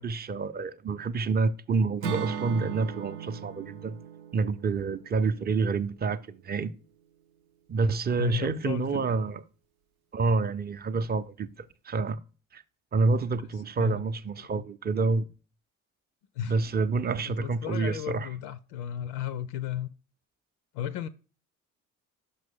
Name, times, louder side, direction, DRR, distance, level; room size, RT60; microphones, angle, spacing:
voice 1, 0.0-4.0 4.3-6.7 7.7-9.4 10.1-12.2 12.5-12.6 12.9-15.3 16.4-18.3, right 4 dB, 25° right, 0.6 m, -28 dB
Acoustic guitar / Strum, 2.0-6.1, right 7 dB, 85° right, 0.6 m, -38 dB
voice 2, 8.1-9.2 13.8-14.0 14.4-14.6 16.4-16.5 17.3-19.9 20.7-21.1, left 11 dB, 65° left, 0.6 m, -35 dB
6.0 x 5.8 x 3.5 m
figure-of-eight pair, 45°, 41 cm